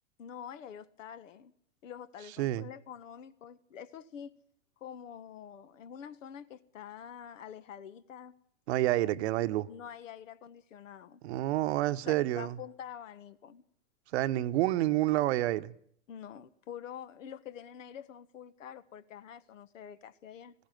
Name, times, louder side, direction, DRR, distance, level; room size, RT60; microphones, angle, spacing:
voice 1, 0.2-1.5 1.8-4.3 4.8-8.3 9.7-11.2 12.1-13.6 16.1-20.5, left 8 dB, 70° left, 1.5 m, -46 dB
voice 2, 8.7-9.7 11.2-12.6 14.1-15.7, right 15 dB, 55° right, 1.0 m, -28 dB
19.5 x 16.0 x 9.2 m
hypercardioid pair, 125°, 39 cm